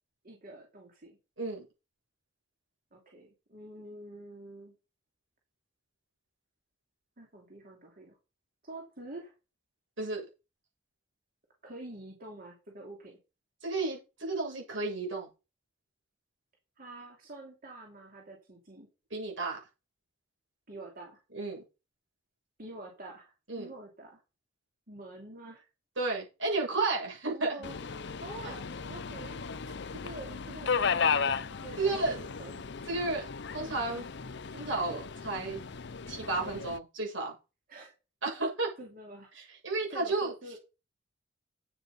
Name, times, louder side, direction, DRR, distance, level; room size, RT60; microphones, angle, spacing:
voice 1, 0.2-1.2 2.9-4.7 7.2-8.2 8.6-9.3 11.6-13.2 16.8-18.9 20.7-21.2 22.6-24.2 24.9-25.6 27.3-27.7 28.2-29.4 29.9-32.6 37.7-37.9 38.8-39.3 39.9-40.6, right 2 dB, 50° right, 0 dB, 2.9 m, -47 dB
voice 2, 13.6-15.3 19.1-19.6 21.3-21.6 23.5-23.7 26.0-27.6 28.4-28.5 31.8-32.2 32.9-33.2 33.5-34.1 34.5-35.6 36.1-37.4 38.2-38.7 39.3-40.3, right 3 dB, 90° right, -1 dB, 7.8 m, -32 dB
Subway metro underground, 27.6-36.8, left 6 dB, 65° left, 0.7 m, -35 dB
9.3 x 8.3 x 5.5 m, 0.30 s
head